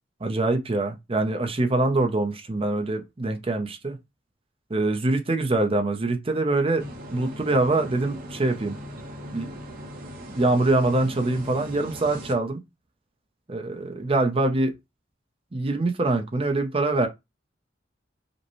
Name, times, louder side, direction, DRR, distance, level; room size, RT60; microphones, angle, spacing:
voice 1, 0.2-4.0 4.7-6.9 7.1-8.8 9.3-9.5 10.3-12.6 13.5-14.7 15.5-17.1, right 2 dB, 30° right, 0.6 m, -24 dB
sound 1, 6.8-12.3, equal, 55° right, 1.2 m, -39 dB
5.1 x 2.2 x 3.0 m
head